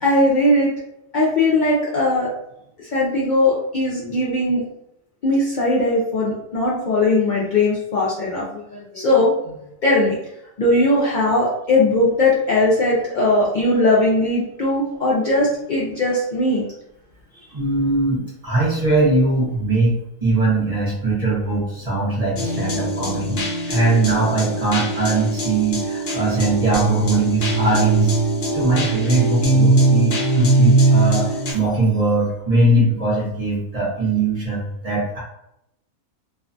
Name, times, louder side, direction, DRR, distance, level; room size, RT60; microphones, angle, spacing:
voice 1, 0.0-0.7 1.1-2.3 2.9-4.6 5.2-9.5 9.8-10.2 10.6-16.6, left 2 dB, 75° left, -6 dB, 0.4 m, -19 dB
voice 2, 17.5-19.9 20.2-28.1 28.5-35.2, right 2 dB, 30° right, -7 dB, 0.8 m, -20 dB
sound 1, 22.4-31.5, right 2 dB, 55° left, 0.8 m, -20 dB
2.5 x 2.2 x 2.5 m, 0.80 s
omnidirectional pair, 1.4 m